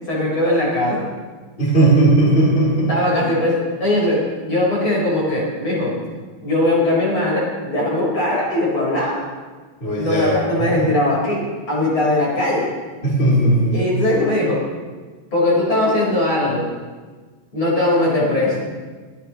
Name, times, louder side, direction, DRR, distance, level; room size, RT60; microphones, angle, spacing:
voice 1, 0.1-1.0 2.9-6.0 6.4-9.3 9.9-12.7 13.7-14.6 15.3-16.7 17.5-18.6, left 1 dB, 35° left, -5 dB, 4.7 m, -20 dB
voice 2, 1.6-2.9 9.8-10.9 13.0-13.8, right 2 dB, 15° left, -7 dB, 3.3 m, -17 dB
25.0 x 11.5 x 3.0 m, 1.4 s
omnidirectional pair, 4.3 m